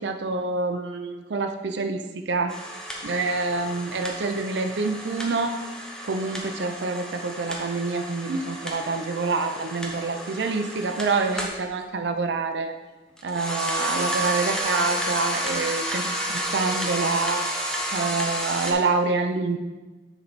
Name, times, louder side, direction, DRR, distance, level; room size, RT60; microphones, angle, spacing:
voice 1, 0.0-2.6 3.0-5.6 6.0-12.7 13.2-17.5 17.9-19.6, right 3 dB, 70° right, 6 dB, 0.5 m, -27 dB
sound 1, 2.5-11.6 13.2-18.7, right 1 dB, 5° left, 0.8 m, -31 dB
9.9 x 4.5 x 4.0 m, 1.2 s
head